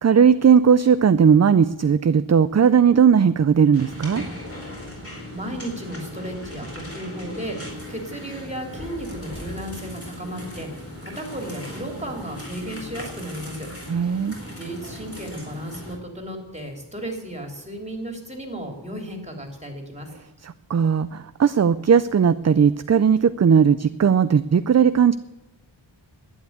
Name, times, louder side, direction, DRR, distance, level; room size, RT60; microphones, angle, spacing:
voice 1, 0.0-4.2 13.9-14.3 20.4-25.2, right 7 dB, 35° right, 13 dB, 0.4 m, -17 dB
sound 1, 3.7-15.9, equal, 30° left, 4.5 m, -37 dB
voice 2, 5.3-13.7 14.6-20.1, right 1 dB, 15° right, 2 dB, 3.1 m, -34 dB
12.0 x 9.5 x 9.4 m, 0.99 s
wide cardioid pair, 85°, 49 cm